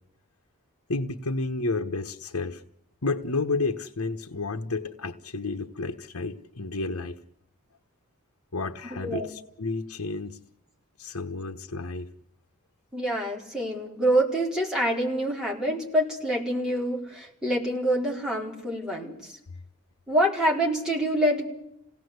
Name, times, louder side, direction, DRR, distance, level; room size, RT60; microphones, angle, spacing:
voice 1, 0.9-2.6 3.0-7.2 8.5-10.4 11.0-12.1, left 3 dB, 75° left, 4 dB, 1.1 m, -31 dB
voice 2, 9.0-9.3 12.9-19.3 20.1-21.5, right 1 dB, 5° right, -3 dB, 4.5 m, -26 dB
27.5 x 18.0 x 8.1 m, 0.80 s
head